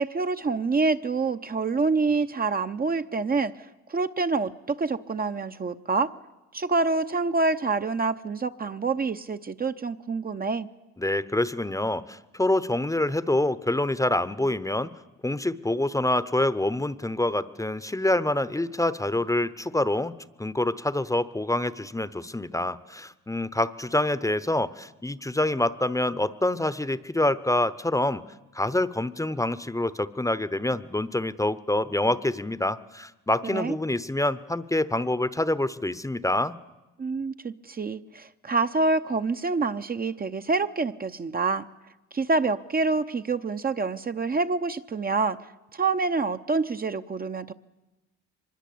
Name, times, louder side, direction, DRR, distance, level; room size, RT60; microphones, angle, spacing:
voice 1, 0.0-6.1 6.5-10.7 33.5-33.8 37.0-41.6 42.1-45.4 45.7-47.5, right 3 dB, 30° right, 8 dB, 0.8 m, -27 dB
voice 2, 11.0-14.9 15.2-20.1 20.4-28.2 28.5-36.6, left 1 dB, 10° left, 15 dB, 0.9 m, -26 dB
24.0 x 21.5 x 8.6 m, 1.0 s
cardioid pair, 90°, 30 cm